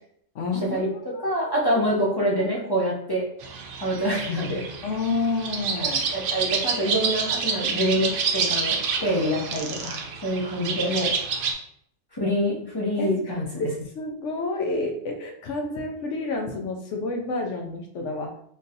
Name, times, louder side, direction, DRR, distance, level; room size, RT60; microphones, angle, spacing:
voice 1, 0.3-0.9 1.2-1.8 4.8-6.0 10.9-11.0 13.0-13.7 14.0-18.3, left 3 dB, 70° left, 3 dB, 0.9 m, -30 dB
voice 2, 1.2-3.3 3.8-4.6 5.8-11.1 12.1-13.7, equal, 25° left, -4 dB, 0.5 m, -26 dB
sound 1, 3.4-11.5, right 5 dB, 60° right, 0.6 m, -28 dB
3.7 x 2.6 x 2.6 m, 0.69 s
omnidirectional pair, 1.4 m